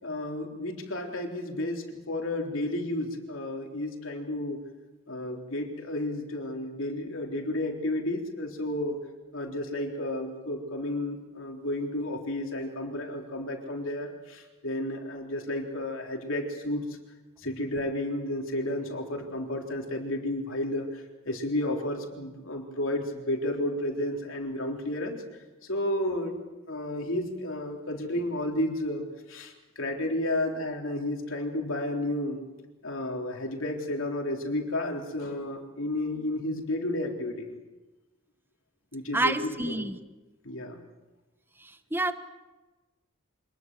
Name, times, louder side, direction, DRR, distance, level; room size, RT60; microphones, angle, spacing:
voice 1, 0.0-4.6 5.1-9.0 9.3-16.8 17.4-25.2 25.7-26.4 26.7-29.0 29.3-32.4 32.8-37.6 38.9-39.9 40.4-40.8, left 1 dB, 65° left, 2 dB, 3.7 m, -32 dB
voice 2, 39.1-39.9 41.9-42.1, right 2 dB, 10° right, 10 dB, 1.1 m, -27 dB
25.5 x 20.5 x 7.6 m, 1.1 s
head